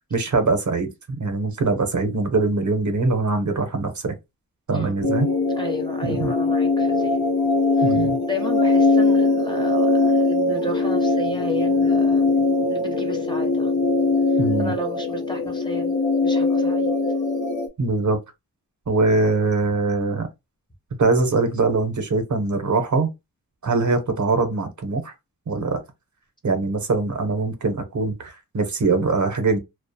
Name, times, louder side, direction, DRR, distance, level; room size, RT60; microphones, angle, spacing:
voice 1, 0.1-0.9 1.2-4.1 4.7-5.3 6.0-6.3 7.8-8.2 14.4-14.7 17.8-18.2 18.9-20.3 21.0-23.1 23.6-25.1 25.5-25.8 26.4-29.6, right 3 dB, 55° right, 0.6 m, -22 dB
sound 1, 5.0-17.7, left 3 dB, 85° left, 0.5 m, -21 dB
voice 2, 5.6-7.2 7.8-12.3 12.7-13.7 14.3-17.0, equal, 15° left, 0.6 m, -33 dB
2.3 x 2.1 x 2.6 m
wide cardioid pair, 100°, 36 cm